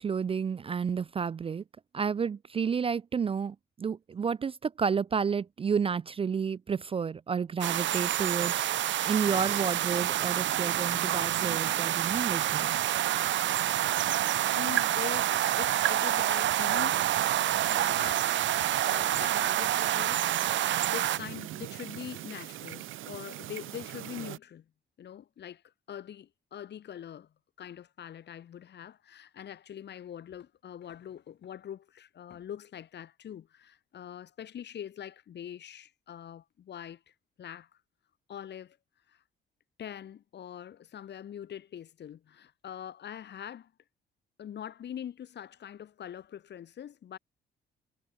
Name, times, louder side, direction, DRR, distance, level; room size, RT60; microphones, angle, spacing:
voice 1, 0.0-1.6 1.9-12.7, right 6 dB, 30° right, 0.4 m, -31 dB
sound 1, 7.6-21.2, right 12 dB, 70° right, 1.0 m, -28 dB
sound 2, 9.3-24.4, right 15 dB, 85° right, 1.8 m, -40 dB
voice 2, 14.6-17.0 17.3-18.3 18.9-20.6 20.9-24.7 25.0-27.3 27.6-37.0 37.4-37.7 38.3-38.8 39.1-39.2 39.8-43.7 44.4-47.2, left 9 dB, 60° left, 1.9 m, -43 dB
cardioid pair, 90°, 20 cm